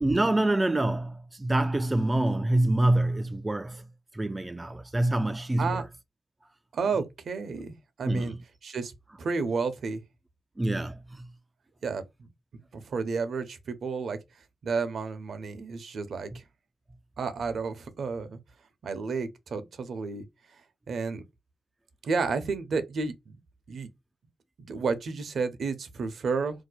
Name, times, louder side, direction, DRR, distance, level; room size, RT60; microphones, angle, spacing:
voice 1, 0.0-3.8 4.1-5.9 8.1-8.4 10.6-11.3, right 1 dB, 20° right, 0.4 m, -26 dB
voice 2, 6.7-8.3 8.6-8.9 9.2-10.0 11.8-12.3 12.7-14.2 14.6-16.4 17.2-18.4 18.8-20.2 20.9-21.2 22.0-23.4 23.7-23.9 24.7-26.6, right 4 dB, 65° right, 0.8 m, -31 dB
2.8 x 2.1 x 4.1 m
supercardioid pair, 50°, 0 cm